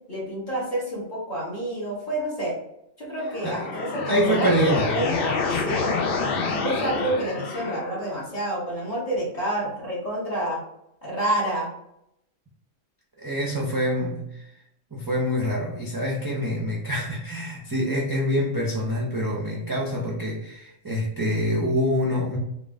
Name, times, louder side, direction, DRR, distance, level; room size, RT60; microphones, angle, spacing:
voice 1, 0.1-2.5 3.0-5.9 6.4-10.6 11.0-11.7, right 1 dB, 35° left, -6 dB, 1.5 m, -28 dB
sound 1, 3.2-8.2, left 4 dB, 60° left, 0.6 m, -28 dB
voice 2, 4.1-4.9 13.2-14.5 14.9-22.4, equal, 25° right, -5 dB, 0.5 m, -25 dB
3.7 x 2.5 x 3.5 m, 0.79 s
omnidirectional pair, 1.3 m